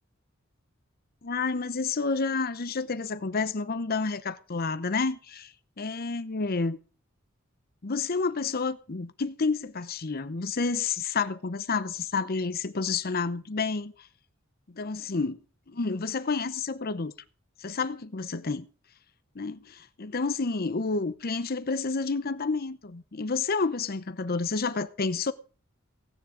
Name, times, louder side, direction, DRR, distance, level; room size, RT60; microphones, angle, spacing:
voice 1, 1.2-6.8 7.8-14.1 14.7-15.4 15.7-17.1 17.6-18.7 19.3-25.3, left 4 dB, 50° left, 0.8 m, -30 dB
16.5 x 9.5 x 5.0 m
head